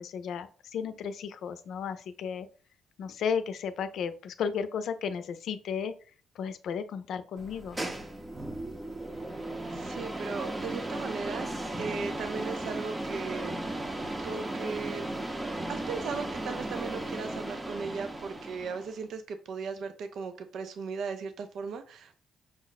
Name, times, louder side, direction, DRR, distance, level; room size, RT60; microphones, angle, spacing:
voice 1, 0.0-2.5 3.0-5.9 6.4-7.8, left 7 dB, 70° left, 11 dB, 0.5 m, -34 dB
sound 1, 7.4-19.0, right 1 dB, 20° right, 0.7 m, -36 dB
voice 2, 9.7-11.5 11.8-13.5 14.2-15.0 15.7-22.2, right 5 dB, 70° right, 8 dB, 0.5 m, -37 dB
6.1 x 2.1 x 4.0 m, 0.40 s
cardioid pair, 90°, 0 cm